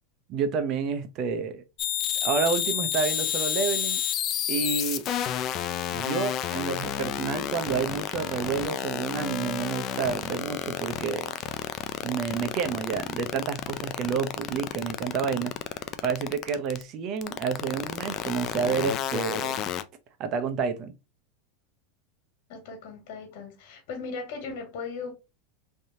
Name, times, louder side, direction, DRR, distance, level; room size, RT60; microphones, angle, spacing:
voice 1, 0.3-1.6 2.2-4.0 4.5-5.0 5.9-11.3 12.0-15.5 16.0-19.7 20.2-20.9, right 6 dB, 40° right, 0.6 m, -29 dB
sound 1, 1.8-16.8 17.2-19.8, left 10 dB, 40° left, 0.3 m, -30 dB
voice 2, 22.5-25.1, left 4 dB, 60° left, 1.8 m, -37 dB
3.3 x 2.8 x 2.7 m
supercardioid pair, 135°, 0 cm